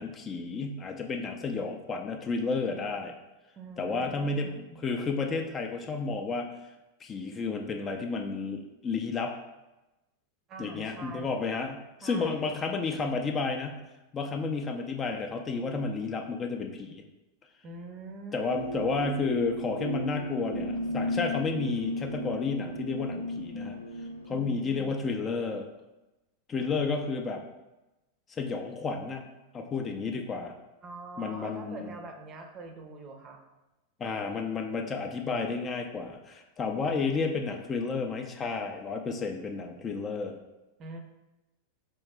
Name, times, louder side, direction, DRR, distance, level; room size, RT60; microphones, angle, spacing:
voice 1, 0.0-3.1 3.8-4.5 4.8-6.5 7.0-9.3 10.6-13.8 14.1-17.0 18.3-23.8 24.3-25.7 26.5-27.4 28.3-29.2 29.5-30.5 31.2-31.9 34.0-40.4, left 4 dB, 20° left, 3 dB, 0.4 m, -31 dB
voice 2, 3.6-4.8 10.5-11.4 12.0-12.6 17.6-18.4 24.3-25.0 30.8-33.4 40.8-41.0, right 3 dB, 30° right, 5 dB, 0.6 m, -44 dB
sound 1, 18.5-24.6, equal, 75° right, 0.5 m, -34 dB
4.7 x 3.0 x 3.4 m, 1.0 s
figure-of-eight pair, 90°, 0 cm